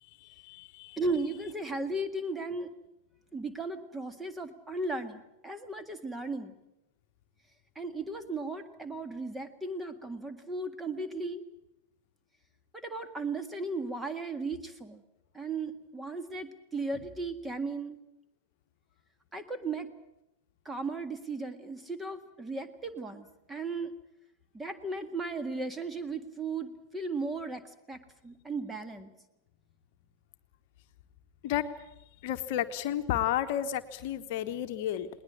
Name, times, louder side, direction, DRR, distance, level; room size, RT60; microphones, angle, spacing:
voice 1, 0.0-1.0 31.4-31.7 32.2-35.1, left 11 dB, 50° left, 8 dB, 1.1 m, -32 dB
voice 2, 1.0-2.7 3.3-6.5 7.8-11.4 12.7-15.0 15.3-18.0 19.3-19.9 20.7-23.9 24.5-29.1, right 3 dB, 10° right, 10 dB, 1.7 m, -36 dB
20.5 x 19.5 x 8.7 m, 0.87 s
figure-of-eight pair, 90°, 0 cm